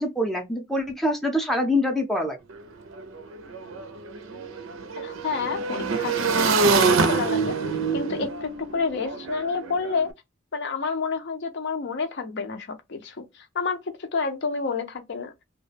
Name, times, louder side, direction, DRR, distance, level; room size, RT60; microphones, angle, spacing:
voice 1, 0.0-2.4, left 1 dB, ahead, 0.5 m, -25 dB
Motorcycle / Engine, 2.5-2.6 2.9-10.0, right 4 dB, 80° right, 0.5 m, -25 dB
voice 2, 5.0-7.5 7.9-10.1 10.5-15.3, left 4 dB, 60° left, 0.6 m, -29 dB
2.3 x 2.1 x 3.2 m
head